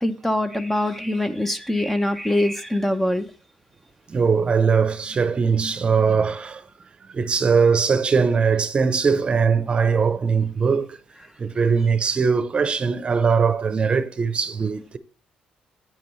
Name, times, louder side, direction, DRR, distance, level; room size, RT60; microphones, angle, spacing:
voice 1, 0.0-3.3, left 1 dB, 5° left, 0.8 m, -23 dB
voice 2, 4.1-6.6 7.1-11.0 11.4-15.0, right 5 dB, 35° right, 0.8 m, -20 dB
9.2 x 7.8 x 3.2 m
cardioid pair, 90°, 3 cm